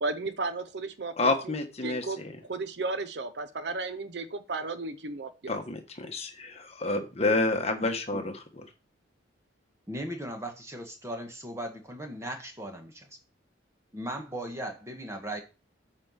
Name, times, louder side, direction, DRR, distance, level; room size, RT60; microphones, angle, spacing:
voice 1, 0.0-1.6 1.8-5.6, right 3 dB, 60° right, 0.6 m, -34 dB
voice 2, 1.2-2.3 5.5-8.3, left 2 dB, 30° left, 1.3 m, -29 dB
voice 3, 7.8-8.3 9.9-13.2 13.9-15.4, right 1 dB, 15° right, 1.5 m, -38 dB
8.8 x 4.6 x 5.7 m
head